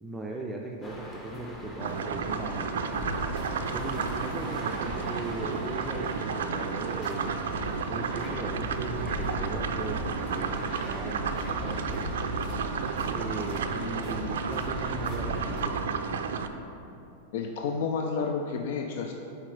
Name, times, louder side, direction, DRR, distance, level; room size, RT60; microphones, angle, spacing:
voice 1, 0.0-2.8 3.7-7.5 7.9-12.1 13.1-16.0, right 2 dB, 10° right, -1 dB, 0.4 m, -38 dB
sound 1, 0.8-15.6, left 1 dB, 25° left, 1.1 m, -38 dB
sound 2, 1.8-16.5, right 6 dB, 85° right, 0.4 m, -32 dB
voice 2, 17.3-19.1, left 5 dB, 65° left, 4 dB, 0.4 m, -30 dB
7.4 x 4.5 x 3.3 m, 2.8 s
hypercardioid pair, 130°, 0 cm